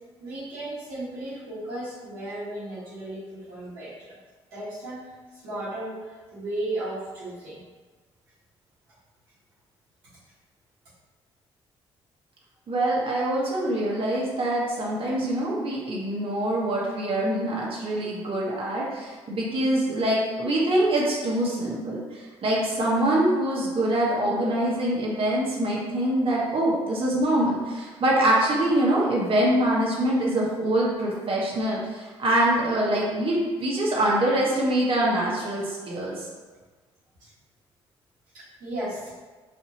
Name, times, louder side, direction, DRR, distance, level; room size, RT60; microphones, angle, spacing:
voice 1, 0.2-4.2 4.5-7.6 37.2-37.3 38.3-39.1, right 1 dB, 85° right, -13 dB, 1.5 m, -35 dB
voice 2, 12.7-36.3, right 1 dB, 45° right, -5 dB, 1.3 m, -24 dB
5.7 x 2.8 x 2.8 m, 1.3 s
hypercardioid pair, 50°, 13 cm